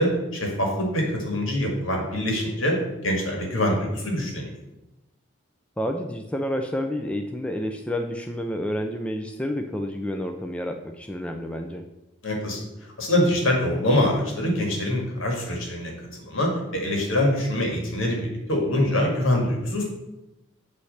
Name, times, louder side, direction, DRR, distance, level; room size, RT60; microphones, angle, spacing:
voice 1, 0.0-2.8 3.0-4.5 12.2-12.6 13.0-15.9 16.2-19.8, left 1 dB, 75° left, 0 dB, 2.0 m, -24 dB
voice 2, 5.8-11.8, equal, 5° left, 4 dB, 0.4 m, -29 dB
8.3 x 3.3 x 6.4 m, 0.97 s
head